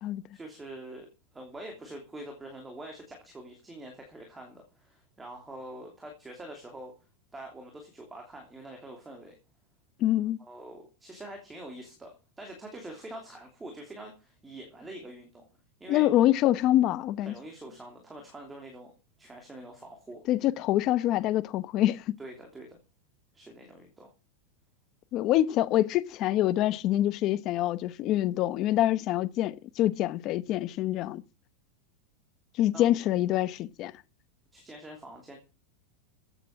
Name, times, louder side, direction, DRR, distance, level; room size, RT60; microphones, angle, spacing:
voice 1, 0.3-1.1 1.3-6.9 7.3-9.4 10.0-10.1 10.4-15.4 15.8-16.1 17.2-18.9 19.2-20.2 22.2-22.8 23.3-24.1 32.7-32.9 34.5-35.4, right 1 dB, 10° right, 2.9 m, -45 dB
voice 2, 10.0-10.4 15.9-17.3 20.3-22.0 25.1-31.2 32.6-33.9, left 13 dB, 35° left, 0.9 m, -25 dB
15.0 x 8.7 x 5.9 m
supercardioid pair, 165°, 0 cm